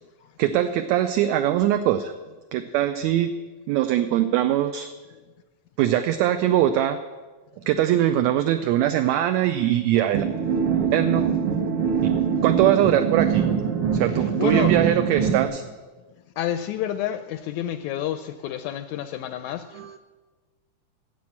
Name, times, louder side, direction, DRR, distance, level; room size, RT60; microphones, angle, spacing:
voice 1, 0.4-2.1 2.5-3.3 3.7-4.9 5.8-7.0 7.7-10.2 10.9-11.2 12.4-13.5 13.9-15.6 19.7-20.0, right 12 dB, 80° right, 9 dB, 1.6 m, -22 dB
sound 1, 10.1-15.5, right 7 dB, 60° right, 1.5 m, -23 dB
voice 2, 14.2-14.7 16.4-20.0, left 11 dB, 80° left, 10 dB, 1.7 m, -29 dB
10.5 x 7.6 x 8.5 m, 1.3 s
omnidirectional pair, 3.7 m